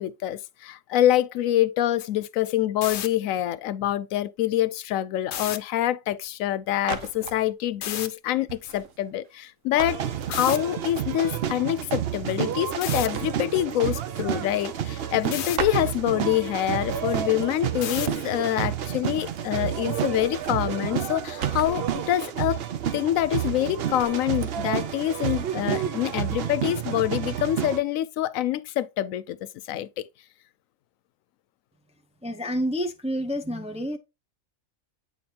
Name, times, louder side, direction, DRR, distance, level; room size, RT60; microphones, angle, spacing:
voice 1, 0.0-22.6 22.9-30.0, left 13 dB, 90° left, 1.0 m, -26 dB
sound 1, 2.7-3.1 5.2-5.6 7.8-8.1 10.3-10.6 12.8-13.1 15.3-15.6 17.8-18.2, left 10 dB, 65° left, 0.9 m, -31 dB
sound 2, 6.8-7.4 8.5-9.5 9.8-10.8 12.0-13.9 14.3-15.3 15.6-16.5 16.9-18.7 19.0-19.9 20.1-22.3 23.2-23.7 24.0-24.6 25.0-25.4, right 7 dB, 75° right, 1.2 m, -40 dB
sound 3, 9.9-27.8, right 9 dB, 55° right, 0.8 m, -30 dB
voice 2, 32.2-34.0, equal, 10° right, 0.4 m, -28 dB
8.6 x 4.4 x 2.8 m
omnidirectional pair, 1.4 m